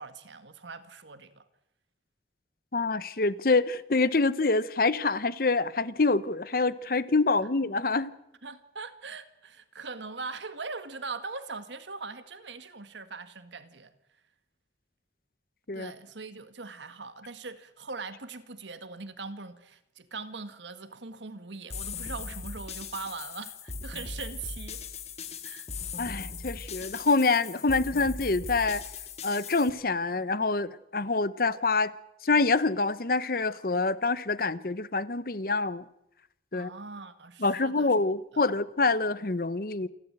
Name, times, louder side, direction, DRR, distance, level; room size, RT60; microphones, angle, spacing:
voice 1, 0.0-1.4 8.4-13.9 15.7-24.8 25.4-25.7 36.5-37.9 38.3-38.4, right 4 dB, 85° right, 1.7 m, -41 dB
voice 2, 2.7-8.1 15.7-15.9 26.0-28.8 29.2-31.9 32.2-35.8 36.5-36.7 37.4-39.9, left 3 dB, 50° left, 0.8 m, -26 dB
sound 1, 21.7-29.7, left 4 dB, 35° left, 1.7 m, -39 dB
28.0 x 12.0 x 8.9 m
head